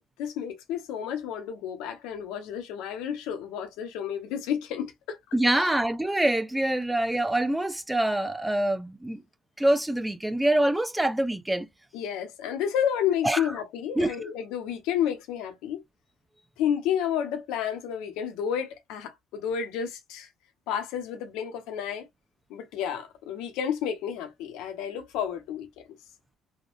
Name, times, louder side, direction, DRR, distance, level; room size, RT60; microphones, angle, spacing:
voice 1, 0.2-5.2 5.6-5.7 11.9-15.8 16.6-20.3 20.7-22.1 22.5-25.8, left 9 dB, 75° left, 0.7 m, -31 dB
voice 2, 5.3-9.2 9.6-11.7 13.2-13.4 14.0-14.2, right 1 dB, 10° right, 0.6 m, -25 dB
3.5 x 2.1 x 2.4 m
hypercardioid pair, 60°, 0 cm